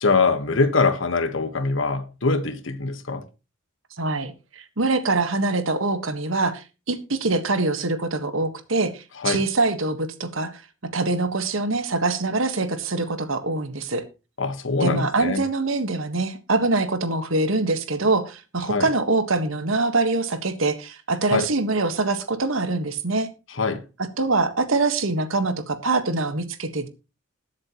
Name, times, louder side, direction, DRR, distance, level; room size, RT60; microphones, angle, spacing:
voice 1, 0.0-3.2 9.2-9.4 14.4-15.4 18.7-18.9 21.3-21.5 23.5-23.8, left 3 dB, 70° left, 1.4 m, -23 dB
voice 2, 4.0-10.6 10.9-14.0 14.8-23.3 24.2-26.9, right 3 dB, 80° right, 1.5 m, -24 dB
20.5 x 7.7 x 3.1 m
head